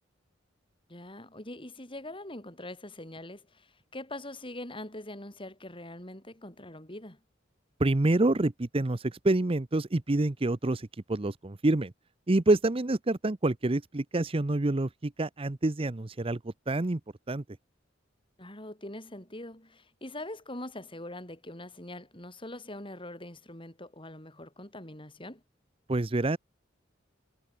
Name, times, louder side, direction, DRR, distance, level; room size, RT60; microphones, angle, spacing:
voice 1, 0.9-7.2 18.4-25.4, left 1 dB, 25° left, 6.7 m, -43 dB
voice 2, 7.8-11.9 12.3-16.4 16.7-17.0 17.3-17.4 25.9-26.4, right 2 dB, 30° right, 0.7 m, -27 dB
head